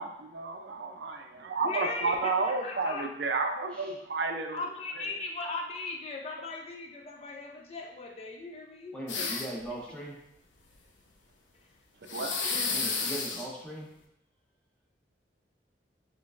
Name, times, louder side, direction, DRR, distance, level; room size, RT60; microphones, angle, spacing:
voice 1, 0.0-4.6 12.1-12.3, right 4 dB, 65° right, 5 dB, 0.4 m, -31 dB
voice 2, 1.6-3.1 4.5-9.4, left 3 dB, 35° left, 1 dB, 0.3 m, -38 dB
voice 3, 8.9-10.2 12.7-13.9, right 1 dB, 5° left, -4 dB, 0.8 m, -39 dB
sound 1, 9.1-9.7 12.1-13.5, left 4 dB, 85° left, 0.6 m, -31 dB
5.0 x 3.2 x 2.4 m, 0.80 s
head